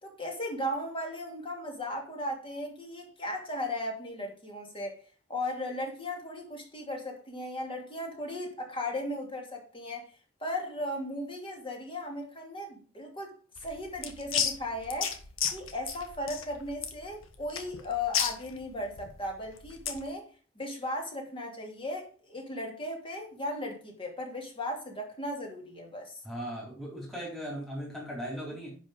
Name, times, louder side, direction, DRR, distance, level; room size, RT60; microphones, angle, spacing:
voice 1, 0.0-5.0 5.3-10.1 10.4-13.3 13.6-15.1 15.5-20.3 20.5-26.2, left 1 dB, 25° left, 2.8 m, -36 dB
sound 1, 13.6-20.1, left 7 dB, 85° left, 1.5 m, -34 dB
voice 2, 26.2-28.8, equal, ahead, 4.1 m, -38 dB
10.5 x 5.6 x 5.3 m
head